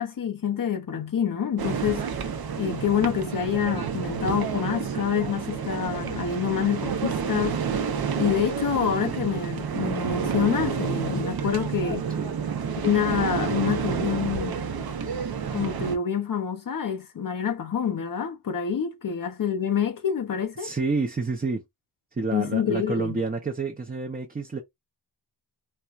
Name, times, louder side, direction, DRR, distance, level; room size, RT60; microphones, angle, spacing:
voice 1, 0.0-2.0 2.6-7.6 8.2-12.1 12.8-14.6 15.5-20.7 22.3-23.2, left 8 dB, 55° left, 0.7 m, -27 dB
sound 1, 1.6-16.0, right 6 dB, 65° right, 0.7 m, -29 dB
voice 2, 20.6-21.6 22.2-24.6, right 4 dB, 25° right, 0.7 m, -29 dB
4.3 x 2.3 x 2.4 m
wide cardioid pair, 140°, 39 cm